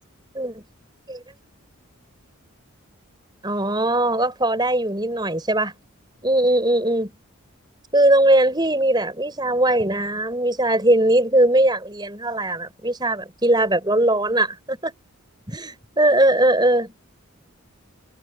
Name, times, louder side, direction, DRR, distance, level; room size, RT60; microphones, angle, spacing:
voice 1, 3.4-5.7 6.2-7.1 7.9-14.9 15.5-16.9, right 1 dB, 20° right, 5.4 m, -20 dB
head